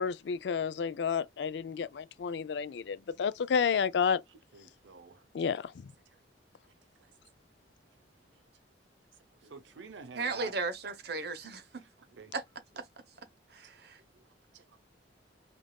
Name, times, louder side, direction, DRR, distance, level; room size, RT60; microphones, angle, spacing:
voice 1, 0.0-4.2 5.3-5.7, left 6 dB, 70° left, 0.4 m, -30 dB
voice 2, 4.5-5.2 9.5-10.5 12.2-12.3 14.5-14.6, right 5 dB, 90° right, 0.7 m, -47 dB
voice 3, 10.1-11.6 12.3-12.4 12.7-12.8 13.5-14.0, right 3 dB, 60° right, 0.8 m, -35 dB
5.2 x 2.5 x 2.2 m
head